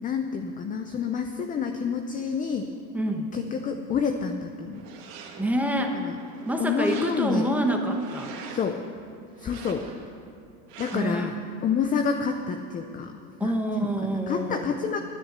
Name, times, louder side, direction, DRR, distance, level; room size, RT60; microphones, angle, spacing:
voice 1, 0.0-2.7 3.3-4.8 5.9-6.1 6.6-7.5 8.5-8.8 9.4-9.9 10.8-11.3 11.6-13.1 13.4-13.5 14.1-15.0, left 6 dB, 20° left, 5 dB, 0.5 m, -28 dB
voice 2, 2.9-3.3 5.4-6.0 6.5-8.3 10.9-11.3 13.4-14.7, right 1 dB, 5° right, 3 dB, 1.1 m, -26 dB
sound 1, 4.7-5.6 6.1-7.5 7.9-8.8 9.4-10.1 10.7-11.3, right 5 dB, 85° right, 1.9 m, -44 dB
10.5 x 9.8 x 8.2 m, 2.5 s
supercardioid pair, 125°, 46 cm